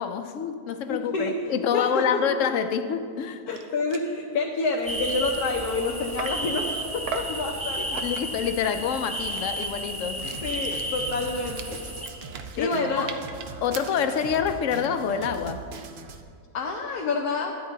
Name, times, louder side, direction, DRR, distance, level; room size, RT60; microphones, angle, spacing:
voice 1, 0.0-3.4 7.8-10.3 12.6-13.1 13.6-15.7, left 7 dB, 65° left, 9 dB, 0.9 m, -27 dB
voice 2, 0.9-1.3 1.7-2.2 3.5-8.0 10.4-11.8 12.2-12.3 12.5-13.2 16.5-17.6, left 3 dB, 85° left, 0 dB, 1.3 m, -28 dB
sound 1, 3.2-3.3 3.5-3.6 3.9-4.1 4.6-6.5 7.1-7.4 8.0-8.4 8.9-14.3, right 7 dB, 80° right, 1.2 m, -40 dB
sound 2, 4.9-12.1, right 1 dB, 10° right, 1.0 m, -33 dB
Drum kit, 10.2-16.2, right 4 dB, 55° right, 0.6 m, -41 dB
13.0 x 9.4 x 3.9 m, 2.3 s
omnidirectional pair, 1.6 m